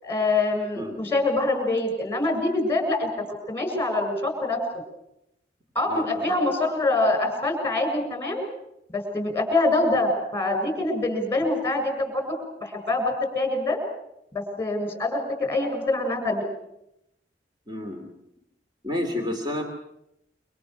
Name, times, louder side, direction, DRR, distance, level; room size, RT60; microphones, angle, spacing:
voice 1, 0.0-3.1 3.5-4.6 5.8-8.4 8.9-13.8 14.3-16.5, left 2 dB, 15° left, 5 dB, 6.8 m, -25 dB
voice 2, 5.9-6.2 17.7-18.0 18.8-19.6, left 1 dB, 25° right, 4 dB, 2.7 m, -30 dB
27.0 x 25.5 x 6.3 m, 0.81 s
head